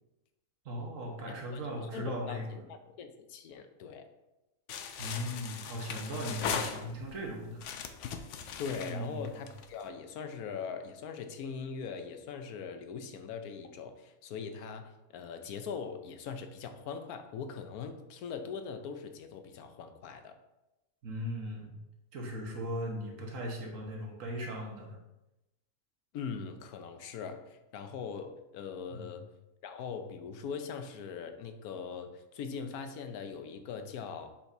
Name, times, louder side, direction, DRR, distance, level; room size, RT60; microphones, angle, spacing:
voice 1, 0.6-2.6 5.0-7.7 8.8-9.4 21.0-21.7 22.1-25.0 28.9-29.2, equal, 65° right, 0 dB, 1.6 m, -38 dB
voice 2, 1.5-4.1 8.6-20.4 26.1-29.2 29.6-34.3, left 6 dB, 90° left, 8 dB, 1.2 m, -41 dB
sound 1, 4.7-7.2 7.6-9.8, left 7 dB, 65° left, 0.8 m, -38 dB
7.2 x 5.9 x 2.7 m, 0.96 s
omnidirectional pair, 1.5 m